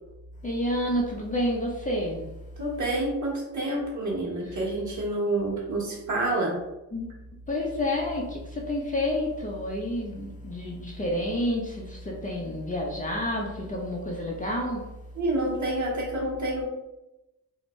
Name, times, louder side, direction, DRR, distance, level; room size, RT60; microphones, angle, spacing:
voice 1, 0.4-2.2 4.5-4.6 6.9-7.1 7.5-14.8, left 1 dB, 20° left, -2 dB, 0.6 m, -29 dB
voice 2, 2.6-6.6 15.1-16.6, right 2 dB, 45° right, -4 dB, 1.4 m, -28 dB
2.6 x 2.1 x 3.1 m, 0.97 s
supercardioid pair, 60°, 40 cm